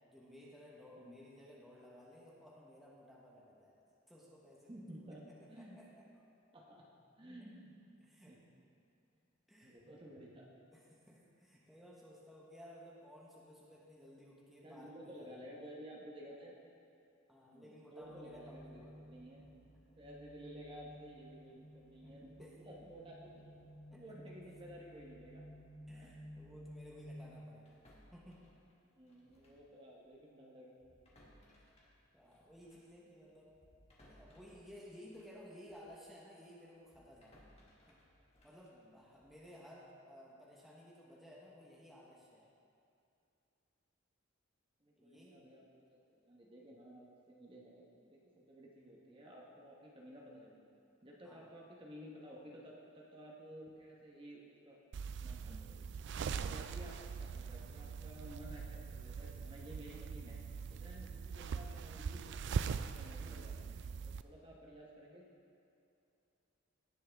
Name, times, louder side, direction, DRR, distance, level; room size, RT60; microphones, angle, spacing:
voice 1, 0.1-3.8 4.1-6.1 8.1-8.3 9.5-9.8 10.7-15.4 17.3-19.0 22.0-22.5 23.9-24.3 25.9-27.8 28.1-28.4 31.5-31.9 32.1-33.5 34.0-37.4 37.9-38.0 38.4-42.5 45.0-45.4 51.2-51.5, left 1 dB, ahead, -5 dB, 1.2 m, -57 dB
voice 2, 4.7-5.8 6.5-6.8 7.2-7.8 8.1-8.4 9.6-10.5 11.1-11.2 14.6-16.6 17.5-19.5 20.0-23.4 23.9-25.5 25.9-26.2 28.8-30.8 38.8-38.9 44.8-50.6 51.0-54.8 55.2-55.8 56.1-60.4 60.7-65.2, equal, 25° right, -3 dB, 1.2 m, -54 dB
sound 1, 18.0-27.4, equal, 80° left, 2.6 m, -55 dB
sound 2, 27.7-29.7 30.0-30.2 30.7-36.0 36.4-39.5, equal, 30° left, 1.6 m, -66 dB
sound 3, 54.9-64.2, right 6 dB, 60° right, 0.3 m, -42 dB
17.5 x 6.4 x 3.5 m, 2.6 s
head